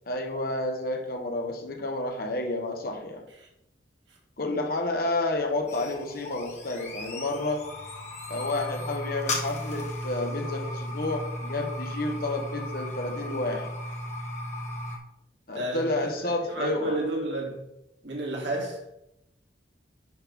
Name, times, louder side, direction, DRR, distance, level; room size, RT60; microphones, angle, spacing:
voice 1, 0.1-3.2 4.4-7.7 8.3-13.7 15.5-17.0, left 2 dB, 55° left, 1.4 m, -30 dB
sound 1, 5.4-15.0, left 1 dB, 40° left, 1.7 m, -35 dB
voice 2, 15.5-17.6 18.0-18.8, right 1 dB, 85° right, 2.6 m, -32 dB
11.0 x 5.7 x 3.6 m
head